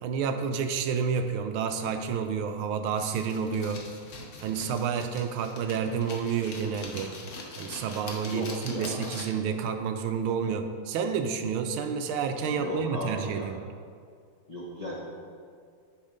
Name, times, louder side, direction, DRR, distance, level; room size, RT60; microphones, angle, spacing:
voice 1, 0.0-3.9 4.4-7.1 7.6-13.6, right 6 dB, 80° right, 7 dB, 1.3 m, -30 dB
sound 1, 3.0-9.5, left 3 dB, 55° left, 0.9 m, -43 dB
voice 2, 8.3-9.1 12.4-13.5 14.5-14.9, equal, 80° left, -5 dB, 0.3 m, -36 dB
9.7 x 3.5 x 5.0 m, 2.2 s
omnidirectional pair, 2.3 m